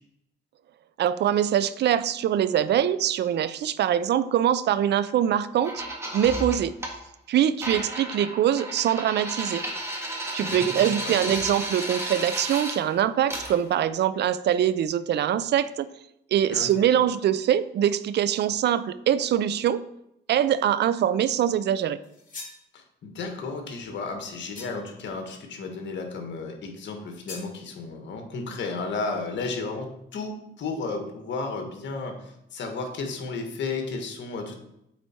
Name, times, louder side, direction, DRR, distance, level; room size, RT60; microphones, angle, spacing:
voice 1, 1.0-5.8 6.1-6.7 7.3-9.6 10.3-15.9 16.3-19.8 20.3-22.0, right 10 dB, 60° right, 15 dB, 0.5 m, -23 dB
sound 1, 5.6-6.9 7.6-12.8 13.3-13.5, right 1 dB, 15° right, 1.6 m, -33 dB
voice 2, 10.4-11.3 16.5-16.7 22.7-34.5, left 3 dB, 65° left, 4 dB, 1.6 m, -33 dB
sound 2, 22.0-22.6 24.5-25.0 27.3-27.5, left 3 dB, 40° left, 2.5 m, -41 dB
8.2 x 4.1 x 4.4 m, 0.82 s
cardioid pair, 90°, 20 cm